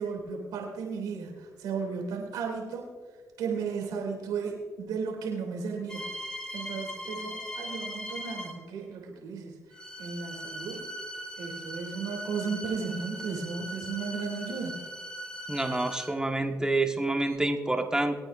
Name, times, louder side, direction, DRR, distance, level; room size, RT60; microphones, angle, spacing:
voice 1, 0.0-2.9 3.4-10.9 11.4-14.8, right 5 dB, 85° right, 0 dB, 2.9 m, -35 dB
sound 1, 5.9-8.7 9.7-16.3 17.2-17.4, equal, 10° left, 1.9 m, -40 dB
voice 2, 15.5-18.2, right 2 dB, 10° right, 4 dB, 1.6 m, -28 dB
24.0 x 8.9 x 2.6 m, 1.5 s
supercardioid pair, 50°, 7 cm